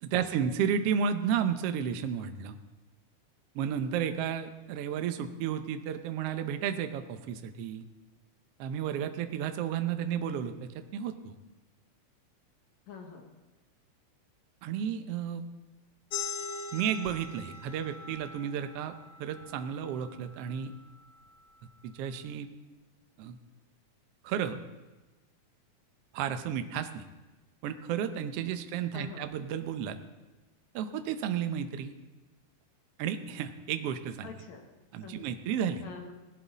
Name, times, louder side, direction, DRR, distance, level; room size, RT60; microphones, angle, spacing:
voice 1, 0.0-2.6 3.5-7.8 8.6-11.4 14.6-15.4 16.7-20.7 21.8-22.5 23.2-23.4 24.2-24.6 26.1-27.0 27.6-30.0 30.7-31.9 33.0-34.3 34.9-35.8, right 8 dB, 75° right, 8 dB, 1.4 m, -32 dB
voice 2, 12.9-13.3 28.9-29.3 34.2-34.7 35.0-35.3 35.8-36.1, left 5 dB, 65° left, 2 dB, 2.5 m, -45 dB
sound 1, 16.1-21.3, left 5 dB, 85° left, 2.6 m, -42 dB
18.5 x 11.0 x 4.1 m, 1.1 s
omnidirectional pair, 3.7 m